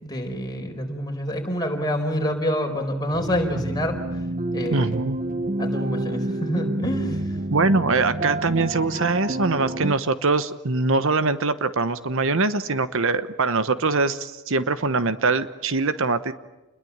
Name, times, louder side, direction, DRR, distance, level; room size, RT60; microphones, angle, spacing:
voice 1, 0.0-4.0 4.5-5.0 5.6-7.2, equal, 20° left, 3 dB, 4.5 m, -27 dB
sound 1, 3.1-9.9, right 1 dB, 40° right, 1.1 m, -28 dB
voice 2, 4.7-5.2 7.5-16.3, right 3 dB, 60° right, 12 dB, 1.0 m, -23 dB
29.0 x 21.5 x 8.8 m, 1.1 s
head